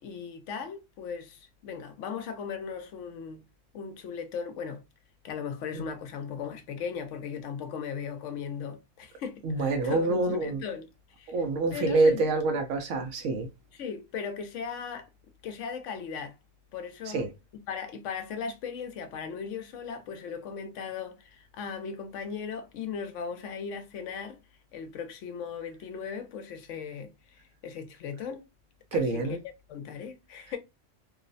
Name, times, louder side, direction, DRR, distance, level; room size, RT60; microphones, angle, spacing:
voice 1, 0.0-3.4 3.7-4.8 5.2-10.9 11.2-11.3 11.7-12.3 13.7-15.1 15.4-16.4 16.7-17.2 17.7-24.4 24.7-28.4 28.9-29.4 29.7-30.6, left 6 dB, 75° left, 0.9 m, -37 dB
voice 2, 9.4-10.6 11.3-13.5 17.0-17.3 28.9-29.4, right 3 dB, 90° right, 1.0 m, -26 dB
2.9 x 2.0 x 2.4 m
omnidirectional pair, 1.3 m